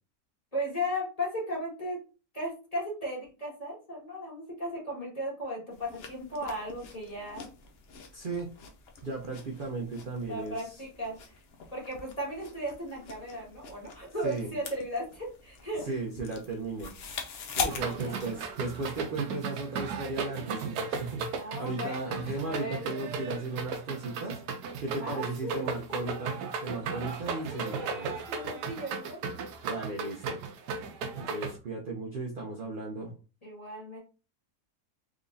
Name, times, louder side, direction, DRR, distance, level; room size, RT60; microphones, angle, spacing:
voice 1, 0.5-2.0 2.3-7.5 10.3-11.3 11.7-15.9 17.8-18.2 21.4-22.8 25.0-26.3 27.5-29.2 33.4-34.0, equal, 25° left, -4 dB, 1.7 m, -36 dB
sound 1, 5.7-19.0, left 6 dB, 65° left, 0.6 m, -42 dB
voice 2, 8.1-8.5 9.0-10.6 14.2-14.5 15.9-17.0 17.6-24.4 24.8-28.2 29.6-30.4 31.1-33.1, right 3 dB, 60° right, 0 dB, 0.5 m, -36 dB
sound 2, 17.7-31.5, right 5 dB, 80° right, 1.2 m, -36 dB
3.6 x 3.0 x 2.5 m, 0.34 s
omnidirectional pair, 1.7 m